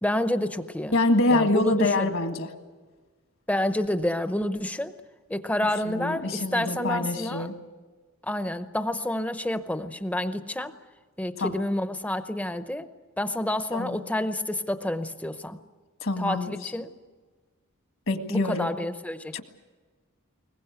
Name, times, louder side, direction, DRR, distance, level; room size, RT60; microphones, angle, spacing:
voice 1, 0.0-0.9 1.3-2.1 3.5-4.9 5.3-7.5 8.2-10.7 11.2-12.9 13.2-15.6 16.2-16.9 18.3-19.4, left 1 dB, 5° left, 10 dB, 0.7 m, -29 dB
voice 2, 0.9-2.5 5.9-7.6 11.4-11.6 13.7-14.0 16.0-16.7 18.1-18.7 19.3-19.4, left 2 dB, 65° left, 7 dB, 1.8 m, -25 dB
22.0 x 20.0 x 8.1 m, 1.4 s
head